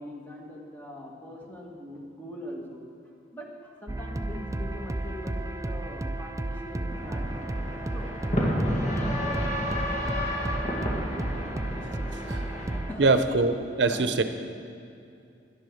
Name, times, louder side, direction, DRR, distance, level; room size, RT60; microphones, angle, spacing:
voice 1, 0.0-7.5 7.9-9.3 11.4-11.6 12.8-13.1 13.9-14.2, equal, 10° left, -2 dB, 1.9 m, -42 dB
sound 1, 3.9-12.9, right 1 dB, 20° right, 0.4 m, -33 dB
sound 2, 6.9-12.8, equal, 40° left, 2.1 m, -31 dB
voice 2, 13.0-13.5 13.8-14.2, right 3 dB, 75° right, 9 dB, 0.7 m, -22 dB
11.0 x 10.5 x 6.4 m, 2.5 s
head